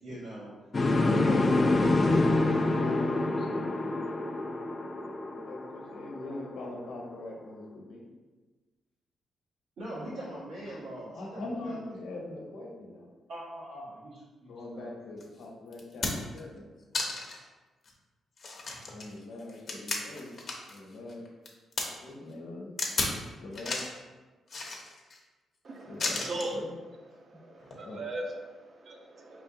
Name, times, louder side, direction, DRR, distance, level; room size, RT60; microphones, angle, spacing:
voice 1, 0.0-0.5 1.0-2.3 2.6-2.9 3.2-3.7 9.8-11.8 13.3-14.9, right 1 dB, 80° right, -11 dB, 1.3 m, -42 dB
sound 1, 0.7-6.7, left 2 dB, 30° left, 0.4 m, -27 dB
voice 2, 0.9-1.5 1.8-4.1 5.2-8.1 10.6-10.8 11.1-13.1 14.5-16.7 18.9-20.3 20.7-21.3 21.8-22.7 23.4-23.8 25.8-26.2 26.5-26.7 27.8-28.0, left 2 dB, 75° left, -2 dB, 0.9 m, -42 dB
sound 2, 15.2-15.3 15.7-16.4 16.9-17.4 17.9-18.0 18.4-20.8 21.1-21.9 22.8-23.2 23.5-24.0 24.5-25.2 26.0-26.5 27.6-27.8, left 3 dB, 45° left, 0.7 m, -33 dB
voice 3, 25.6-26.6 27.1-29.4, right 1 dB, 45° right, 2 dB, 0.6 m, -39 dB
4.7 x 3.3 x 2.7 m, 1.3 s
cardioid pair, 120°, 0 cm